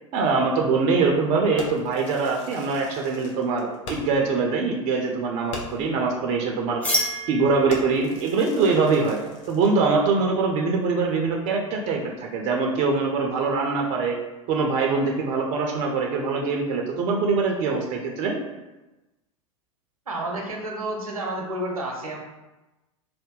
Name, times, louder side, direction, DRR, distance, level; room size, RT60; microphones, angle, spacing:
voice 1, 0.1-6.8 7.3-9.2 9.5-14.2 14.5-18.4, right 4 dB, 40° right, 1 dB, 0.5 m, -23 dB
Fireworks, 1.6-4.3 4.6-4.7 5.1-5.2 5.5-6.0 6.6-6.8 7.1-7.3 7.7-9.8, left 3 dB, 55° left, 0.7 m, -40 dB
sound 1, 6.8-12.4, equal, 10° left, 0.9 m, -34 dB
voice 2, 20.1-22.2, right 1 dB, 80° right, 1 dB, 0.7 m, -30 dB
2.6 x 2.1 x 3.7 m, 1.1 s
figure-of-eight pair, 90°, 18 cm